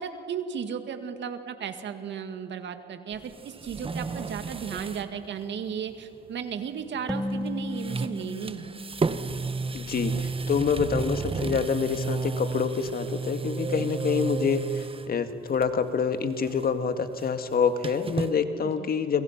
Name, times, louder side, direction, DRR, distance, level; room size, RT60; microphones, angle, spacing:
voice 1, 0.0-8.8 13.6-13.9 18.6-18.9, right 7 dB, 65° right, 8 dB, 2.1 m, -35 dB
sound 1, 3.1-5.1 5.4-5.5 7.2-7.5 7.7-15.1 15.5-16.0 16.2-18.3, right 4 dB, 25° right, 1.1 m, -32 dB
sound 2, 7.1-10.6, left 1 dB, 5° left, 1.7 m, -36 dB
voice 2, 9.7-19.2, left 6 dB, 50° left, 9 dB, 1.8 m, -27 dB
29.5 x 25.5 x 5.9 m, 2.5 s
cardioid pair, 90°, 20 cm